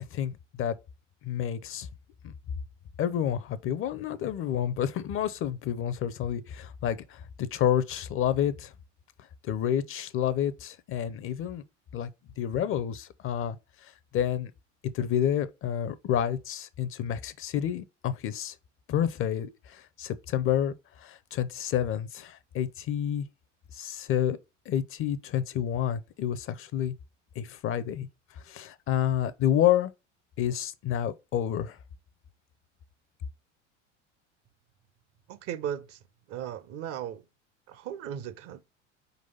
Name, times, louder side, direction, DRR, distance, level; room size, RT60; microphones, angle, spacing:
voice 1, 0.1-0.7 1.2-1.9 2.2-2.3 3.0-8.7 9.4-11.6 11.9-12.1 12.4-13.6 13.8-14.5 14.9-18.5 18.9-23.3 23.7-24.4 24.7-26.9 27.4-28.1 28.3-29.9 30.4-31.8, left 10 dB, 35° left, 0.6 m, -29 dB
voice 2, 35.3-37.2 37.7-38.6, right 10 dB, 40° right, 0.6 m, -37 dB
4.7 x 4.0 x 5.4 m
hypercardioid pair, 75°, 38 cm